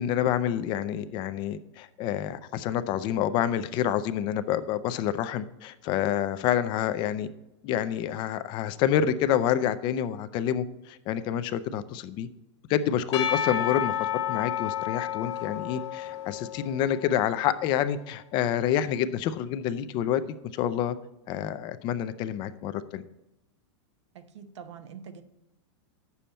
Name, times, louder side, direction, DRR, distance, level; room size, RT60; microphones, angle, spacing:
voice 1, 0.0-7.3 7.6-12.3 12.7-13.9 14.3-20.2 20.5-21.0 21.3-23.0, left 10 dB, 30° left, 12 dB, 0.5 m, -28 dB
Percussion / Church bell, 13.1-17.3, left 10 dB, 80° left, 1.4 m, -31 dB
voice 2, 24.1-25.2, right 7 dB, 85° right, 9 dB, 1.0 m, -44 dB
8.9 x 7.0 x 4.3 m, 0.94 s
supercardioid pair, 150°, 15 cm